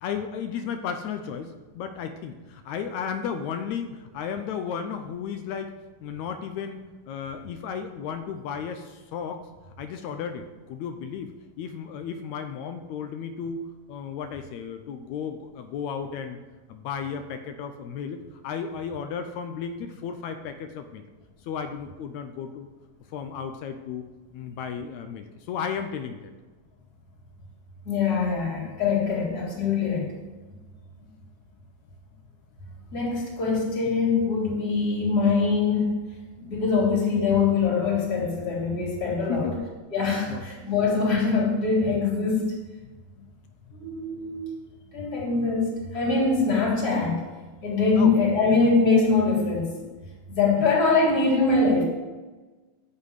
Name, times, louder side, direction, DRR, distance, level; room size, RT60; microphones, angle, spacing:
voice 1, 0.0-5.7 6.0-9.4 9.8-13.6 13.9-16.4 16.7-21.0 21.4-22.7 23.1-26.3 39.3-39.7 40.3-40.4 48.0-48.1, left 7 dB, 85° left, 8 dB, 1.6 m, -34 dB
voice 2, 27.8-30.1 30.4-30.5 32.9-35.9 36.4-39.5 39.9-42.5 43.8-44.5 44.9-47.2 47.6-49.7 50.3-51.8, left 4 dB, 30° left, -3 dB, 3.3 m, -23 dB
9.7 x 5.8 x 8.2 m, 1.3 s
omnidirectional pair, 4.0 m